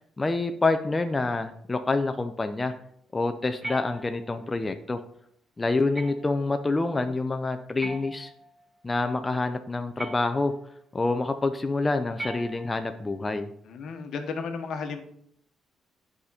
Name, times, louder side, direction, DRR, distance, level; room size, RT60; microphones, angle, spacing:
voice 1, 0.2-2.7 3.1-5.0 5.6-8.3 8.8-10.5 10.9-13.5, left 3 dB, 20° left, 7 dB, 0.5 m, -27 dB
sound 1, 3.6-4.5 5.9-6.5 7.8-8.7 10.0-10.7 12.2-13.0, right 1 dB, 15° right, 1.9 m, -40 dB
voice 2, 13.7-15.0, left 5 dB, 70° left, 5 dB, 1.1 m, -33 dB
8.6 x 5.1 x 4.1 m, 0.67 s
cardioid pair, 90°, 0 cm